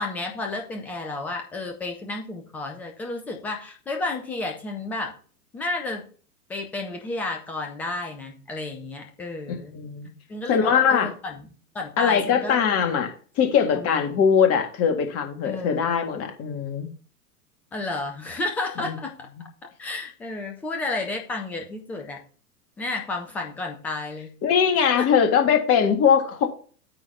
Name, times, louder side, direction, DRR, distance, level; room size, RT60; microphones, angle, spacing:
voice 1, 0.0-5.1 5.5-6.1 6.5-9.8 10.3-12.6 13.7-14.2 15.4-15.8 17.7-19.5 19.8-22.2 22.8-24.3 24.9-25.1, left 2 dB, 5° left, 3 dB, 0.3 m, -32 dB
voice 2, 9.7-10.1 10.5-11.1 12.0-16.9 18.8-19.0 24.4-26.5, left 7 dB, 30° left, 5 dB, 1.9 m, -21 dB
8.7 x 3.8 x 5.5 m, 0.41 s
figure-of-eight pair, 100°, 47 cm